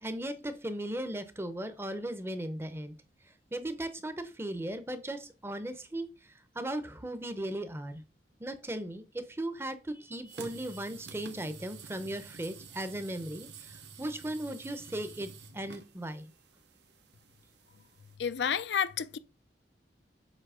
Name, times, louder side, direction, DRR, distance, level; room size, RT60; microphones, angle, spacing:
voice 1, 0.0-2.9 3.5-8.0 8.4-16.3, right 1 dB, 15° right, 0.7 m, -37 dB
sound 1, 10.3-18.2, right 4 dB, 75° right, 0.9 m, -50 dB
voice 2, 18.2-19.2, left 7 dB, 80° left, 0.5 m, -30 dB
7.5 x 2.8 x 4.9 m
head